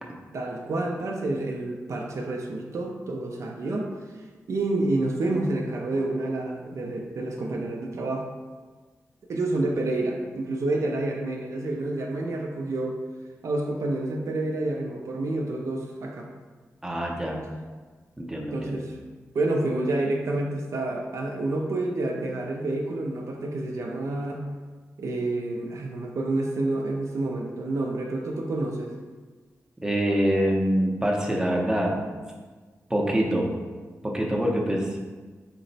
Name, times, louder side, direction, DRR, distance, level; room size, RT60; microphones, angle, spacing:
voice 1, 0.3-3.9 4.1-8.3 9.3-13.0 13.4-16.3 18.5-19.0 19.3-24.4 25.0-28.9, right 2 dB, 65° right, 0 dB, 0.4 m, -29 dB
voice 2, 16.8-17.4 18.2-18.8 29.8-32.0 32.9-33.5 34.0-35.0, equal, 10° right, 0 dB, 0.6 m, -25 dB
4.2 x 2.0 x 3.9 m, 1.4 s
wide cardioid pair, 105°, 5 cm